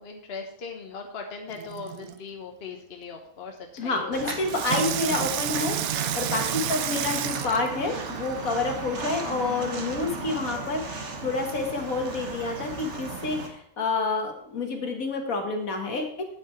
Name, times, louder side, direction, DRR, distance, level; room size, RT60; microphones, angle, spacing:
voice 1, 0.0-4.3 6.6-6.7 8.9-9.0, left 4 dB, 45° left, 3 dB, 1.3 m, -39 dB
Water tap faucet / Sink (filling or washing), 1.5-2.2 4.5-8.4 9.1-9.2, right 12 dB, 75° right, 1.0 m, -31 dB
voice 2, 3.8-16.3, left 3 dB, 70° left, 4 dB, 1.9 m, -29 dB
Walk footsteps, 4.1-13.5, right 3 dB, 55° right, 1.5 m, -36 dB
8.6 x 8.0 x 4.4 m, 0.66 s
omnidirectional pair, 1.5 m